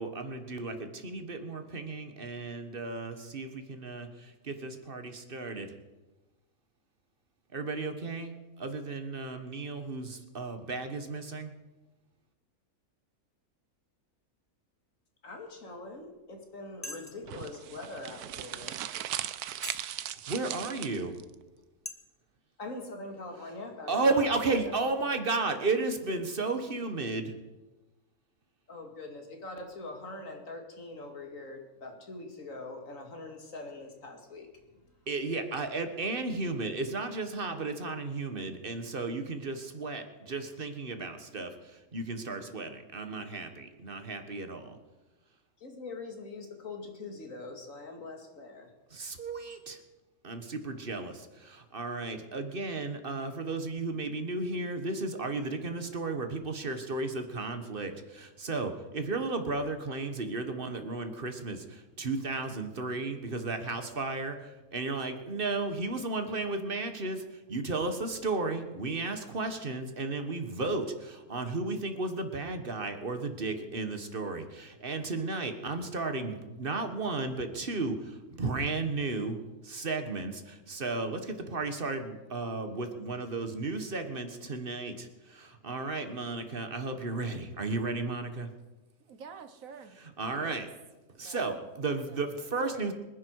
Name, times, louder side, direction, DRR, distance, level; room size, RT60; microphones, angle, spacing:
voice 1, 0.0-5.7 7.5-11.5 20.0-21.2 23.9-27.3 35.1-41.5 41.9-44.8 48.9-49.8 50.2-79.4 79.6-88.5 90.2-90.7 91.2-92.9, right 3 dB, 40° right, 7 dB, 1.6 m, -34 dB
voice 2, 15.2-18.8 22.6-24.9 28.7-34.5 45.6-48.7, left 2 dB, 60° left, 3 dB, 2.7 m, -43 dB
sound 1, 16.0-16.2 16.8-17.3 18.0-18.1 18.7-18.8 19.6-19.9 20.5-20.6 21.3-21.5 21.8-21.9, left 1 dB, 10° left, 1.1 m, -41 dB
sound 2, 17.3-21.2, right 11 dB, 85° right, 1.2 m, -38 dB
voice 3, 89.1-90.7 91.2-91.7 92.0-92.2 92.6-92.9, right 5 dB, 65° right, 10 dB, 1.4 m, -48 dB
25.5 x 10.5 x 4.7 m, 1.1 s
omnidirectional pair, 1.6 m